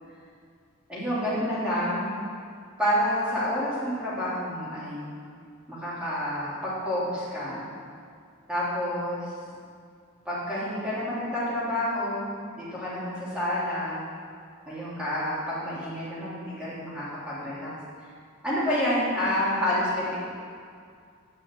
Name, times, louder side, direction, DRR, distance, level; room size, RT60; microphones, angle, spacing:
voice 1, 0.9-2.1 2.8-5.1 5.7-7.6 8.5-9.3 10.2-14.0 14.7-17.7 18.4-20.3, left 1 dB, 5° right, -10 dB, 3.3 m, -29 dB
9.3 x 6.3 x 8.4 m, 2.3 s
head